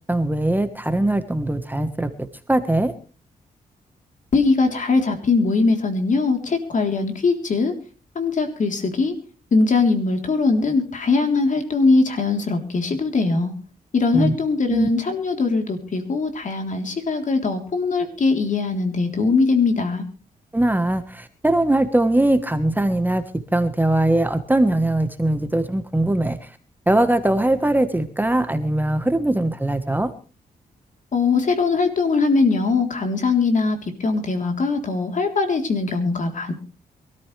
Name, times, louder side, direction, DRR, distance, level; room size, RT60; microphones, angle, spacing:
voice 1, 0.1-2.9 14.1-14.3 14.7-14.9 20.5-23.2 23.5-26.5 26.9-30.1, right 1 dB, 10° right, 10 dB, 1.3 m, -21 dB
voice 2, 4.3-7.7 8.2-9.1 9.5-13.5 13.9-20.0 31.1-36.5, left 4 dB, 55° left, 5 dB, 3.6 m, -21 dB
23.5 x 13.5 x 3.4 m, 0.36 s
cardioid pair, 90°, 16 cm